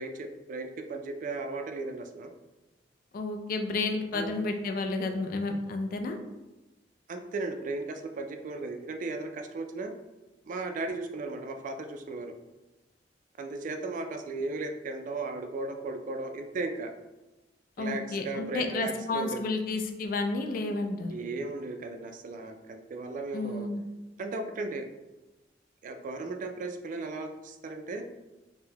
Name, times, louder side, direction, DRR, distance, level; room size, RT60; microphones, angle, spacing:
voice 1, 0.0-2.3 4.1-4.3 7.1-9.9 10.4-12.3 13.4-16.9 17.8-19.4 21.1-23.7 24.2-24.9 25.8-28.1, right 3 dB, 45° right, 6 dB, 0.3 m, -36 dB
voice 2, 3.1-6.2 17.8-21.1 23.3-23.8, left 3 dB, 50° left, 5 dB, 0.3 m, -31 dB
3.7 x 2.0 x 2.8 m, 1.0 s
head